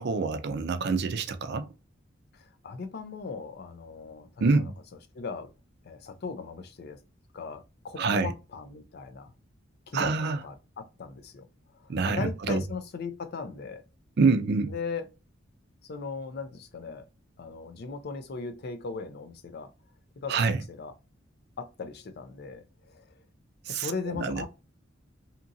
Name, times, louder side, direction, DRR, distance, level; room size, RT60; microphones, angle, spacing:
voice 1, 0.0-1.7 4.4-4.7 8.0-8.3 9.9-10.4 11.9-12.6 14.2-14.7 20.3-20.6 23.7-24.4, right 4 dB, 60° right, 0.4 m, -26 dB
voice 2, 2.3-4.7 5.1-5.5 5.8-7.0 7.3-9.3 9.9-10.1 10.4-11.5 11.7-13.8 14.7-15.1 15.8-17.1 17.4-19.7 20.2-20.9 21.6-23.2 23.7-24.5, left 4 dB, 55° left, 0.4 m, -38 dB
2.8 x 2.4 x 2.6 m
head